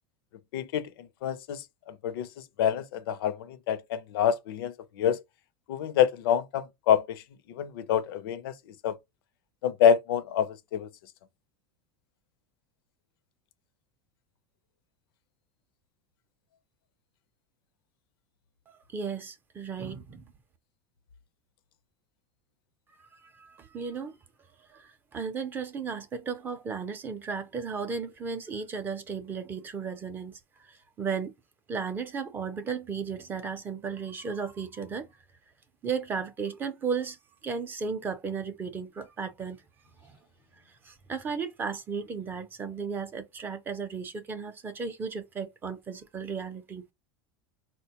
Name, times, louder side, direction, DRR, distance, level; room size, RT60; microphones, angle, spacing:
voice 1, 0.5-0.9 1.2-2.3 2.6-5.2 5.7-7.2 7.5-8.5 8.8-9.0 9.6-10.9, left 9 dB, 85° left, 0.5 m, -27 dB
voice 2, 18.7-20.2 23.0-24.2 24.7-31.3 31.7-35.1 35.8-37.2 37.4-39.6 40.0-40.2 40.7-46.8, right 5 dB, 15° right, 0.4 m, -35 dB
4.1 x 2.1 x 2.8 m
supercardioid pair, 160°, 12 cm